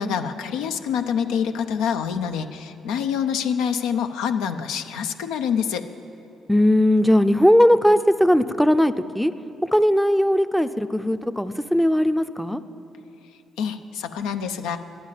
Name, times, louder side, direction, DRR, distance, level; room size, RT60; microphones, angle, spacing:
voice 1, 0.0-5.9 13.6-14.8, left 7 dB, 80° left, 7 dB, 0.5 m, -26 dB
voice 2, 6.5-9.3 9.7-12.6, equal, 5° left, 10 dB, 0.5 m, -18 dB
11.0 x 9.4 x 7.4 m, 2.9 s
hypercardioid pair, 55°, 0 cm